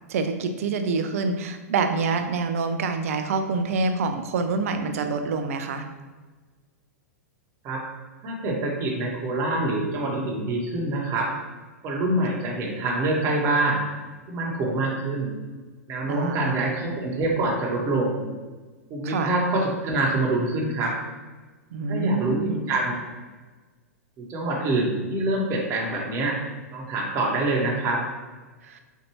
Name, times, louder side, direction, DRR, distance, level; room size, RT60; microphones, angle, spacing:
voice 1, 0.1-5.9 16.1-16.7 19.0-19.3 21.7-22.6 28.6-28.8, right 4 dB, 65° right, 7 dB, 0.5 m, -26 dB
voice 2, 8.2-11.3 11.8-13.8 14.3-15.4 15.9-18.3 18.9-21.0 21.9-23.0 24.2-26.4 26.7-28.0, right 2 dB, 35° right, -2 dB, 1.0 m, -25 dB
4.4 x 2.5 x 3.0 m, 1.3 s
hypercardioid pair, 105°, 9 cm